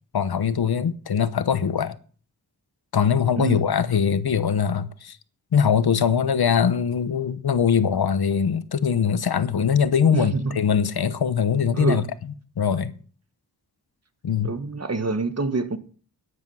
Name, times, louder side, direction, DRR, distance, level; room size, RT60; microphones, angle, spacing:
voice 1, 0.1-2.0 2.9-5.2 5.5-12.0 12.6-12.9 14.2-14.5, left 7 dB, 85° left, 1.0 m, -22 dB
voice 2, 10.1-10.5 11.7-12.0 14.4-15.8, right 3 dB, 45° right, 1.5 m, -26 dB
10.5 x 9.9 x 5.5 m
wide cardioid pair, 75°, 37 cm